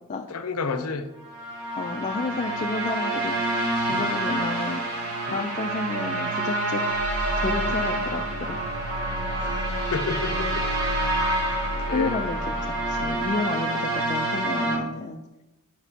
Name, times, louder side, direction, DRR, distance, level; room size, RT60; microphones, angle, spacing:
voice 1, 0.3-1.1 3.9-4.1 5.3-5.5 9.4-10.7 10.9-11.2 11.8-12.1, left 4 dB, 75° left, 9 dB, 0.6 m, -31 dB
sound 1, 1.2-14.8, right 1 dB, 85° right, 1.7 m, -27 dB
voice 2, 1.7-3.3 3.9-4.8 5.3-6.8 7.4-8.6 11.9-15.2, left 3 dB, 35° left, 4 dB, 0.3 m, -31 dB
sound 2, 6.9-13.1, equal, 60° right, 1.7 m, -34 dB
7.1 x 5.9 x 2.8 m, 1.0 s
head